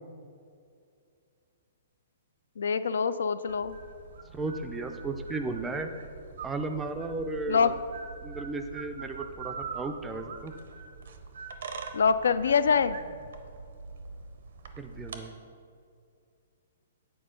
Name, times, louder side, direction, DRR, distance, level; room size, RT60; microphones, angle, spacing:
voice 1, 2.6-3.7 7.5-7.7 11.9-13.0, left 6 dB, 80° left, 13 dB, 0.3 m, -24 dB
sound 1, 3.5-15.2, right 5 dB, 65° right, 0.7 m, -43 dB
voice 2, 4.3-5.9 6.4-7.7 8.2-10.5 14.8-15.3, right 3 dB, 10° right, 6 dB, 0.4 m, -34 dB
8.6 x 4.4 x 5.1 m, 2.4 s
hypercardioid pair, 170°, 0 cm